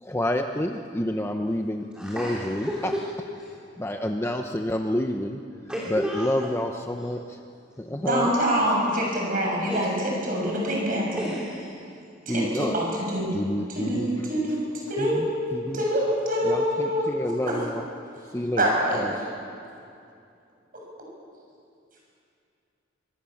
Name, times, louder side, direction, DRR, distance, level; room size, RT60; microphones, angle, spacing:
voice 1, 0.0-2.9 3.8-5.4 5.9-7.4 7.8-8.4 12.3-12.8 13.3-14.3 15.0-15.8 16.5-17.8 18.3-19.1, left 1 dB, 15° left, 3 dB, 0.9 m, -29 dB
voice 2, 2.0-3.0 3.4-3.5 5.7-6.5 9.7-9.9 11.1-11.7, equal, 5° right, -5 dB, 3.9 m, -32 dB
voice 3, 7.9-11.2 12.2-13.3 13.7-15.2 15.7-17.6 18.6-19.3, equal, 45° right, -2 dB, 6.6 m, -25 dB
27.0 x 25.0 x 7.3 m, 2.5 s
head